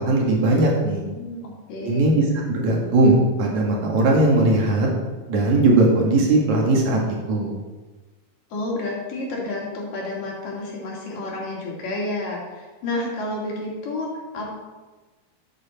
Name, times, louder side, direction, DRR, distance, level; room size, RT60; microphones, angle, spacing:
voice 1, 0.0-1.0 1.8-2.3 2.5-4.9 5.3-7.0 7.3-7.5, right 2 dB, 60° right, -2 dB, 3.5 m, -18 dB
voice 2, 1.1-2.1 8.5-14.6, left 2 dB, 80° left, -3 dB, 4.4 m, -30 dB
13.0 x 9.2 x 4.5 m, 1.2 s
omnidirectional pair, 3.8 m